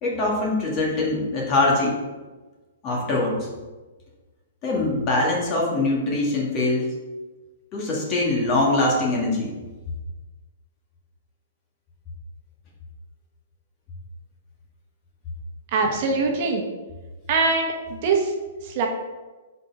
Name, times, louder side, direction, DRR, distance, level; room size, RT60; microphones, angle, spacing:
voice 1, 0.0-2.0 2.8-3.5 4.6-6.9 7.7-9.5, left 2 dB, 30° left, -3 dB, 1.7 m, -23 dB
voice 2, 15.7-16.6 17.3-18.3 18.6-18.9, right 4 dB, 45° right, 2 dB, 1.1 m, -22 dB
5.0 x 4.3 x 5.7 m, 1.2 s
hypercardioid pair, 150°, 0 cm